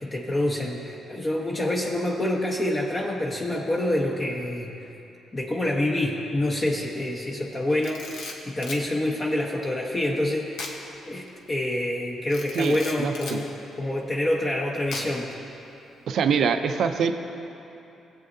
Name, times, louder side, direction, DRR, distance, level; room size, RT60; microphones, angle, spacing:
voice 1, 0.0-4.7 5.3-10.6 11.1-13.5 13.8-15.3, left 1 dB, 30° left, -2 dB, 1.0 m, -27 dB
Camera, 7.7-8.9 10.5-10.8 11.2-11.3 12.3-13.4 14.9-15.3, left 3 dB, 80° left, 1.1 m, -37 dB
voice 2, 12.5-13.4 16.1-17.1, right 6 dB, 70° right, 8 dB, 0.5 m, -24 dB
17.0 x 7.9 x 2.7 m, 2.8 s
supercardioid pair, 70°, 0 cm